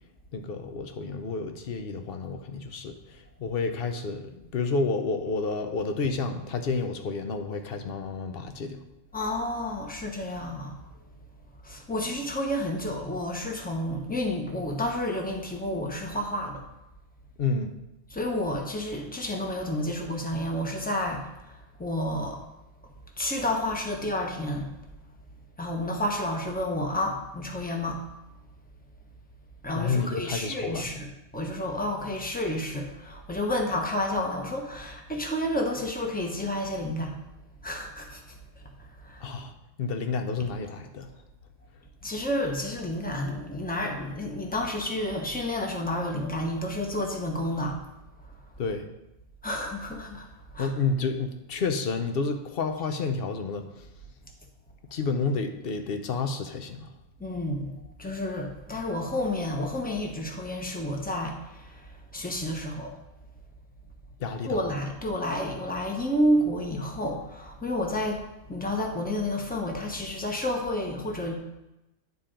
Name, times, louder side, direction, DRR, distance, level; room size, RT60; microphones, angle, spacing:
voice 1, 0.3-3.0 3.4-8.8 17.4-17.7 29.7-30.9 39.2-39.5 39.8-41.1 48.6-48.8 50.6-53.6 54.9-56.9 64.2-64.6, left 4 dB, 50° left, 7 dB, 0.9 m, -30 dB
voice 2, 9.1-10.8 11.6-16.6 18.1-22.4 22.8-24.7 25.6-28.0 29.6-37.2 37.6-38.4 38.8-39.2 42.0-47.8 49.4-50.3 50.5-50.7 57.2-62.9 64.4-71.3, left 1 dB, 10° left, 1 dB, 0.9 m, -30 dB
9.7 x 4.4 x 5.1 m, 0.94 s
omnidirectional pair, 1.4 m